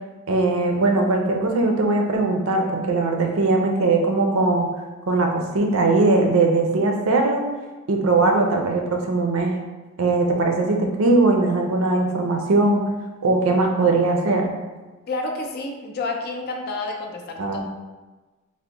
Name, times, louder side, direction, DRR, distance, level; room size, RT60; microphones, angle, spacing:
voice 1, 0.3-4.7 5.1-7.4 7.9-9.6 10.0-12.8 13.2-14.5 17.4-17.6, right 3 dB, 70° right, 2 dB, 0.5 m, -20 dB
voice 2, 15.1-17.6, left 2 dB, 45° left, 3 dB, 0.4 m, -29 dB
3.4 x 2.1 x 3.9 m, 1.2 s
head